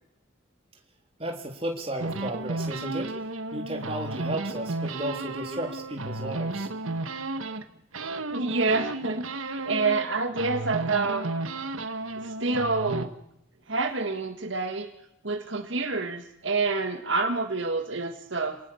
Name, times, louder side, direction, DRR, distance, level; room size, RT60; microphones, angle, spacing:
voice 1, 1.2-6.7, right 1 dB, 30° right, 2 dB, 3.5 m, -34 dB
sound 1, 2.0-7.6 7.9-10.1 10.4-13.1, right 2 dB, 90° right, 1.6 m, -33 dB
voice 2, 8.3-11.3 12.2-13.1 13.7-14.9 15.2-18.6, right 3 dB, 65° right, 6 dB, 1.8 m, -27 dB
28.0 x 19.0 x 7.1 m, 0.80 s
head